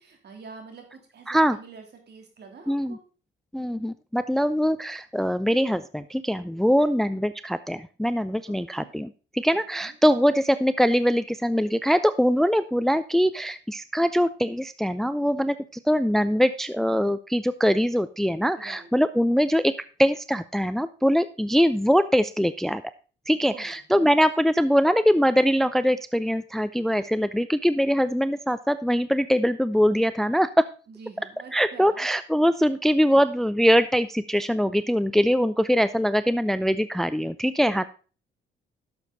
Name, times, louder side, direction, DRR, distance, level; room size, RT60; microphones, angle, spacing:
voice 1, 0.0-3.0 6.8-6.9 8.5-8.9 9.5-10.0 18.6-18.9 23.4-24.2 30.9-32.1 33.1-33.2, right 5 dB, 55° right, 4 dB, 3.2 m, -46 dB
voice 2, 1.3-1.6 2.7-3.0 3.5-15.6 15.9-22.8 23.3-30.7 31.5-37.8, equal, ahead, 14 dB, 0.5 m, -22 dB
11.5 x 7.1 x 4.0 m, 0.35 s
cardioid pair, 90°, 20 cm